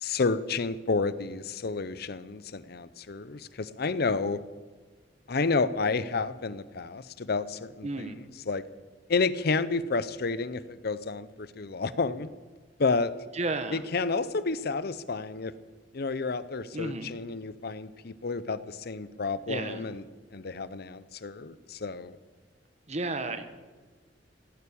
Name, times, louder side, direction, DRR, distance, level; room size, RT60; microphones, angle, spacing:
voice 1, 0.0-4.4 5.3-8.1 8.5-8.6 9.1-12.3 12.8-13.1 13.7-15.5 15.9-20.0 20.3-22.2, left 4 dB, 60° left, 15 dB, 0.7 m, -30 dB
voice 2, 7.8-8.2 13.3-13.9 16.7-17.1 19.5-19.9 22.9-23.4, right 2 dB, 40° right, 9 dB, 1.3 m, -32 dB
17.0 x 9.4 x 8.5 m, 1.4 s
head